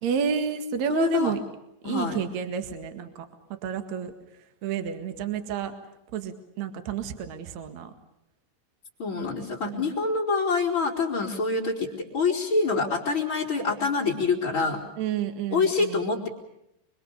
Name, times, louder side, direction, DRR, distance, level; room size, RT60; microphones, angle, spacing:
voice 1, 0.0-1.4 1.8-3.3 3.6-4.1 4.6-5.7 6.1-7.9 9.6-9.9 15.0-16.1, right 7 dB, 50° right, 7 dB, 2.3 m, -30 dB
voice 2, 0.9-1.3 1.8-2.2 9.0-14.8 15.5-16.3, left 4 dB, 30° left, 1 dB, 3.0 m, -26 dB
25.0 x 24.5 x 6.9 m, 0.83 s
omnidirectional pair, 5.6 m